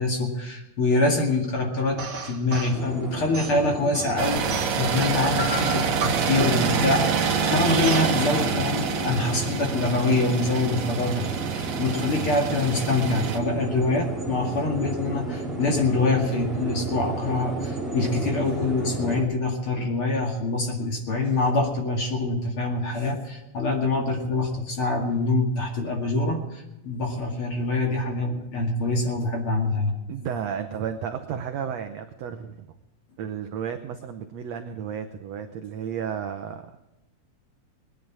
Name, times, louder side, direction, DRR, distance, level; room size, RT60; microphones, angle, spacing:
voice 1, 0.0-11.2 11.5-30.0, left 2 dB, 40° left, 1 dB, 2.7 m, -25 dB
sound 1, 2.0-2.8 3.3-4.9 5.4-6.9 7.8-8.1, right 2 dB, 30° right, 1.3 m, -33 dB
sound 2, 2.6-19.2, right 2 dB, ahead, 3.7 m, -33 dB
sound 3, 4.2-13.4, right 6 dB, 55° right, 2.0 m, -26 dB
voice 2, 30.1-32.7 33.2-36.7, right 8 dB, 75° right, 7 dB, 1.5 m, -33 dB
20.5 x 11.0 x 4.9 m, 0.97 s
omnidirectional pair, 4.1 m